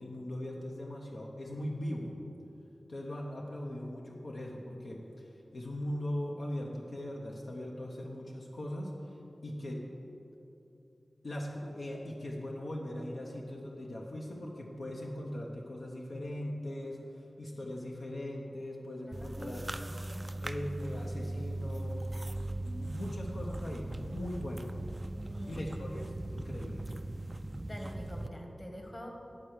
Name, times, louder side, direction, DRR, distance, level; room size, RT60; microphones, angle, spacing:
voice 1, 0.0-2.1 2.9-5.3 5.5-8.9 9.4-9.9 11.2-19.7 20.4-22.1 22.6-24.7 25.5-26.0 26.3-26.8, left 1 dB, 75° left, -1 dB, 0.8 m, -40 dB
sound 1, 19.1-28.3, right 1 dB, 30° right, 0.3 m, -39 dB
voice 2, 19.2-19.5 20.1-20.2 25.2-25.8 27.6-29.1, equal, 35° left, 1 dB, 1.3 m, -45 dB
10.5 x 4.5 x 6.5 m, 2.9 s
cardioid pair, 50°, 0 cm